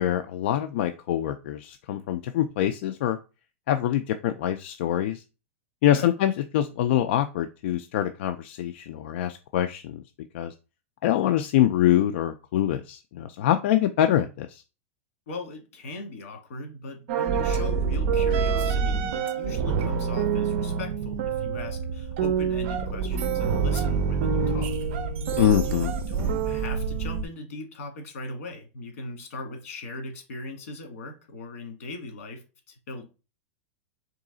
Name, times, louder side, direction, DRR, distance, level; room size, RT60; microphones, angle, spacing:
voice 1, 0.0-3.2 3.7-5.2 5.8-10.0 10.3-10.5 11.0-14.6 25.4-25.9, left 11 dB, 55° left, 8 dB, 0.4 m, -24 dB
voice 2, 15.3-24.7 25.4-33.1, left 2 dB, 75° left, 4 dB, 1.8 m, -39 dB
sound 1, 17.1-27.2, right 6 dB, 50° right, 0.6 m, -26 dB
3.7 x 3.1 x 3.8 m, 0.31 s
supercardioid pair, 165°, 8 cm